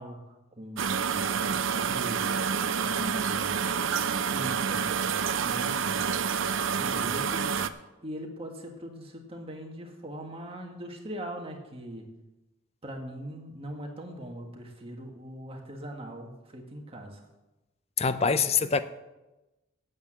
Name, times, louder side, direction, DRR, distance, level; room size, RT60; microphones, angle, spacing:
voice 1, 0.0-3.5 4.0-4.9 5.4-6.1 6.8-7.6 8.0-12.1 12.8-17.2, equal, 30° right, 2 dB, 1.7 m, -41 dB
sound 1, 0.8-7.7, right 6 dB, 65° right, 0.5 m, -28 dB
voice 2, 18.0-18.8, left 5 dB, 30° left, 12 dB, 0.5 m, -24 dB
8.7 x 8.3 x 7.6 m, 1.0 s
head